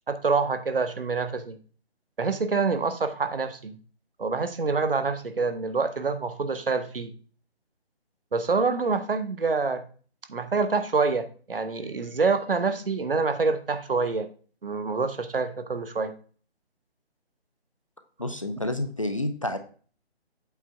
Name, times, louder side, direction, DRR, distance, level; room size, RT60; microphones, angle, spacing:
voice 1, 0.1-1.6 2.2-3.7 4.2-7.1 8.3-9.8 10.3-14.3 14.6-16.1, right 4 dB, 55° right, 9 dB, 0.9 m, -26 dB
voice 2, 18.2-19.6, left 1 dB, 30° left, 8 dB, 0.5 m, -29 dB
8.1 x 3.4 x 5.5 m, 0.41 s
figure-of-eight pair, 150°, 33 cm